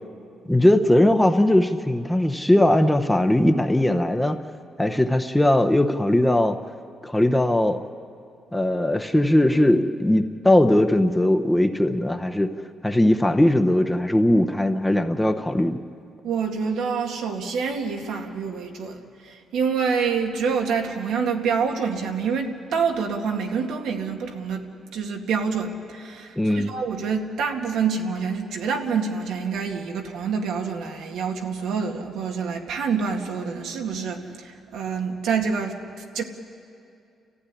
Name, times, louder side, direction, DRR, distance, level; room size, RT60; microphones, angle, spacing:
voice 1, 0.5-4.4 4.8-6.6 7.0-7.8 8.5-12.5 12.8-15.8 26.4-26.7, left 1 dB, 5° left, 6 dB, 0.8 m, -19 dB
voice 2, 16.2-24.6 24.9-36.2, right 5 dB, 85° right, 2 dB, 2.2 m, -27 dB
30.0 x 15.0 x 9.9 m, 2.5 s
cardioid pair, 150°, 0 cm